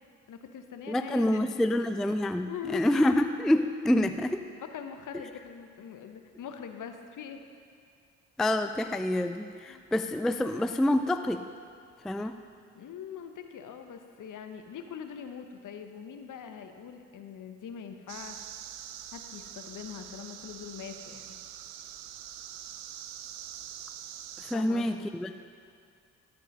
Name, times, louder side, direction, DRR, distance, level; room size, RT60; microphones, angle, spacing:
voice 1, 0.3-1.7 2.4-3.1 4.6-7.4 9.7-9.8 12.7-18.5 19.1-21.3 24.5-25.1, left 7 dB, 55° left, 6 dB, 1.0 m, -42 dB
voice 2, 0.9-4.4 8.4-11.4 12.0-12.3 24.4-25.3, left 1 dB, ahead, 9 dB, 0.3 m, -27 dB
sound 1, 18.1-24.6, right 10 dB, 80° right, 0.6 m, -44 dB
13.0 x 5.4 x 5.4 m, 2.3 s
hypercardioid pair, 50°, 37 cm